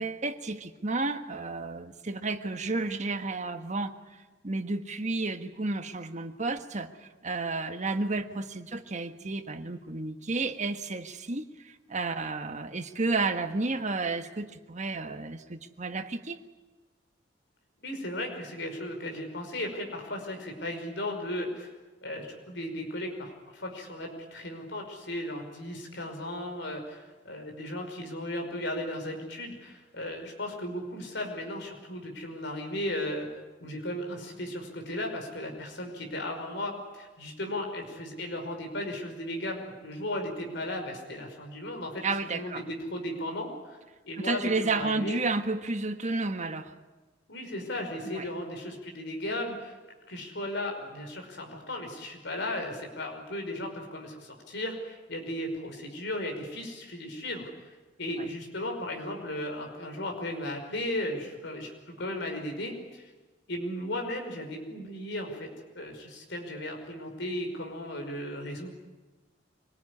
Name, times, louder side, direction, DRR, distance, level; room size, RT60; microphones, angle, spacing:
voice 1, 0.0-3.9 4.4-16.4 42.0-42.6 44.2-46.7 48.1-48.3 58.2-58.3, right 3 dB, 40° right, 8 dB, 1.5 m, -32 dB
voice 2, 17.8-21.7 22.0-33.3 33.6-42.0 42.3-43.8 44.0-45.2 47.3-49.8 50.1-57.7 58.0-63.1 63.5-68.7, left 1 dB, 65° left, 3 dB, 5.5 m, -36 dB
25.5 x 19.5 x 9.9 m, 1.2 s
head